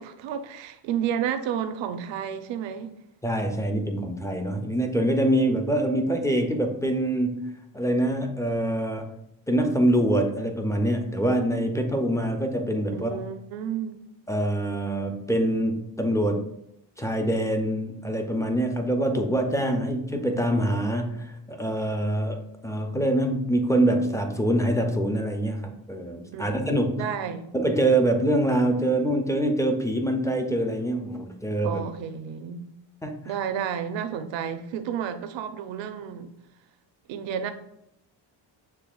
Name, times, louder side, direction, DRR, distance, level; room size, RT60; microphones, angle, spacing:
voice 1, 0.0-3.0 12.9-14.0 26.3-26.5 27.0-27.5 31.6-32.6 33.2-36.3 37.1-37.5, right 8 dB, 75° right, 0.6 m, -31 dB
voice 2, 3.2-9.1 9.5-13.2 14.3-16.4 17.0-27.1 27.5-31.8 33.0-33.1, right 1 dB, 10° left, 0.3 m, -25 dB
6.6 x 3.2 x 2.3 m
cardioid pair, 120°, 45 cm